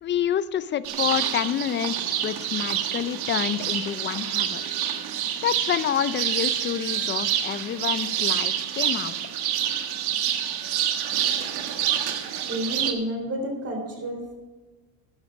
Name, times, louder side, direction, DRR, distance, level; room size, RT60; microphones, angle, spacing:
voice 1, 0.0-4.8 5.4-9.2, left 9 dB, 25° left, 16 dB, 0.5 m, -28 dB
sound 1, 0.8-12.9, right 10 dB, 55° right, 1.6 m, -27 dB
voice 2, 12.5-14.4, equal, 30° right, 3 dB, 3.3 m, -30 dB
12.5 x 9.8 x 5.1 m, 1.2 s
supercardioid pair, 115°, 46 cm